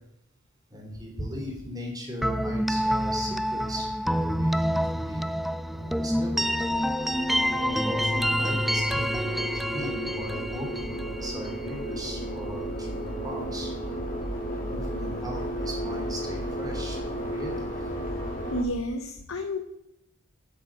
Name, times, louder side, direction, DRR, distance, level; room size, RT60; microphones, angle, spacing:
voice 1, 0.7-5.2 5.7-6.5 7.5-13.7 14.5-17.7 18.0-18.1, equal, 20° right, 0 dB, 3.5 m, -38 dB
sound 1, 2.2-12.0, equal, ahead, 0.3 m, -27 dB
sound 2, 5.2-18.6, equal, 45° left, 2.7 m, -34 dB
voice 2, 18.5-19.8, left 1 dB, 75° left, 6 dB, 1.0 m, -31 dB
9.2 x 7.5 x 7.6 m, 0.81 s
head